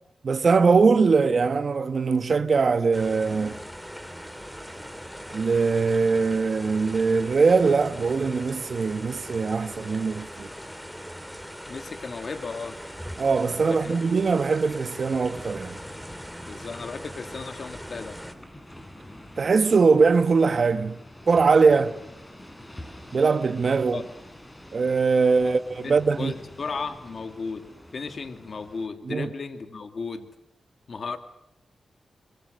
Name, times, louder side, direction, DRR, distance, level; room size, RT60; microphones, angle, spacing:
voice 1, 0.2-3.6 5.3-10.5 13.2-15.7 19.4-21.0 21.3-21.9 23.1-24.0 24.7-26.3 29.1-29.3, right 4 dB, 60° right, 1.3 m, -21 dB
sound 1, 2.9-18.3, equal, ahead, 3.2 m, -40 dB
sound 2, 9.7-28.9, left 1 dB, 20° left, 6.2 m, -47 dB
voice 2, 11.7-12.8 13.6-14.0 16.4-18.2 23.9-24.0 25.4-25.6 25.8-30.3 30.9-31.2, left 4 dB, 60° left, 2.4 m, -35 dB
25.5 x 25.0 x 6.6 m
cardioid pair, 60°, 0 cm